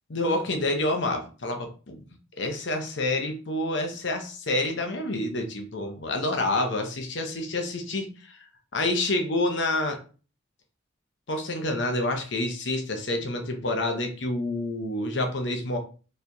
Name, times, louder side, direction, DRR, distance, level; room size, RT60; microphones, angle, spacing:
voice 1, 0.1-2.0 2.4-8.4 8.7-10.0 11.3-15.8, left 2 dB, 65° left, 4 dB, 0.8 m, -28 dB
4.5 x 3.2 x 2.7 m, 0.37 s
head